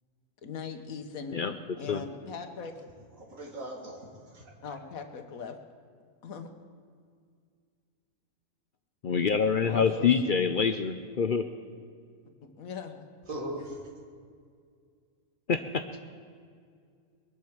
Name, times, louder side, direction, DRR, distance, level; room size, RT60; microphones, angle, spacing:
voice 1, 0.4-1.5 1.8-2.7 4.6-5.6 6.2-6.5 9.6-10.5 12.4-13.0, left 5 dB, 85° left, 7 dB, 1.6 m, -40 dB
voice 2, 1.8-2.2 3.2-4.5 13.3-13.9, right 1 dB, 75° right, 0 dB, 2.7 m, -40 dB
voice 3, 9.0-11.5 15.5-15.8, left 6 dB, 55° left, 9 dB, 0.6 m, -26 dB
22.0 x 7.7 x 7.1 m, 2.2 s
omnidirectional pair, 1.4 m